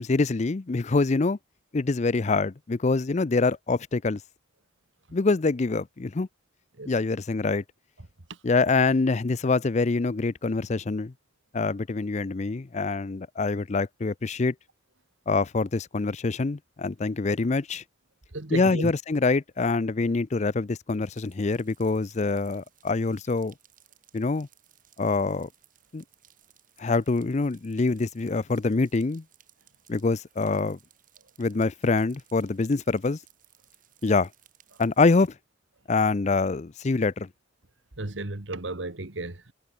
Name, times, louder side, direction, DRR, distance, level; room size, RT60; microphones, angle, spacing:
voice 1, 0.0-1.4 1.7-4.2 5.1-6.3 6.9-7.6 8.4-11.1 11.5-14.5 15.3-17.8 18.5-23.5 24.1-24.5 25.0-25.5 25.9-26.0 26.8-29.2 29.9-30.8 31.4-33.2 34.0-34.3 34.8-35.3 35.9-37.3, left 3 dB, 40° left, 0.5 m, -25 dB
voice 2, 18.3-18.9 38.0-39.5, right 2 dB, 85° right, 2.0 m, -33 dB
sound 1, 21.0-35.3, right 11 dB, 45° right, 5.6 m, -61 dB
head